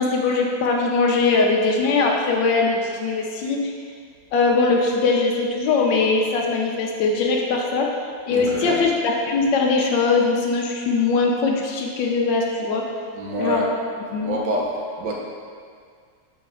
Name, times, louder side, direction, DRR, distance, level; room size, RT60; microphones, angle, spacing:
voice 1, 0.0-3.7 4.3-7.9 8.3-12.8 13.4-13.8 14.1-14.4, left 4 dB, 80° left, -1 dB, 1.3 m, -21 dB
voice 2, 8.3-8.8 13.2-13.7 14.2-14.7 15.0-15.1, right 1 dB, 70° right, -3 dB, 1.5 m, -26 dB
6.0 x 4.3 x 3.6 m, 2.1 s
omnidirectional pair, 2.0 m